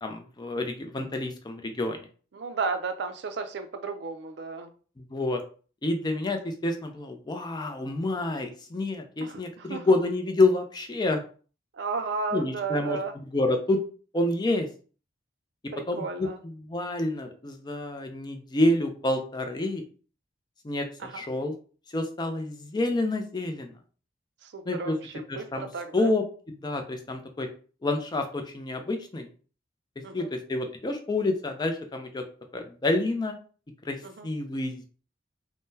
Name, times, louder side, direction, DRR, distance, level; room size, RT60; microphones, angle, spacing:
voice 1, 0.0-2.0 5.0-5.4 5.8-11.2 12.3-13.8 14.1-14.7 15.9-19.8 20.6-21.5 21.9-23.7 24.7-24.9 25.3-25.7 25.9-27.5 27.8-29.3 30.1-32.3 32.5-33.4 33.8-34.9, left 2 dB, 25° left, 0.4 m, -28 dB
voice 2, 2.3-4.7 9.2-9.9 11.7-13.1 15.7-16.4 21.0-21.2 24.4-26.1 30.0-30.3 34.0-34.3, right 4 dB, 65° right, 0.4 m, -33 dB
3.6 x 2.1 x 2.7 m
head